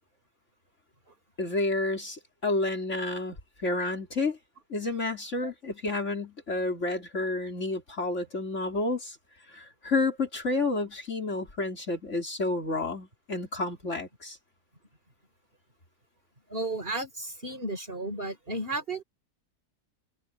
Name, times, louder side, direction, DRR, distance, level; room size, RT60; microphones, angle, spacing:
voice 1, 1.4-3.4 3.6-4.4 4.7-9.2 9.5-14.4, left 2 dB, 45° left, 3.8 m, -30 dB
voice 2, 16.5-19.0, right 2 dB, 30° right, 3.8 m, -33 dB
open air
omnidirectional pair, 1.8 m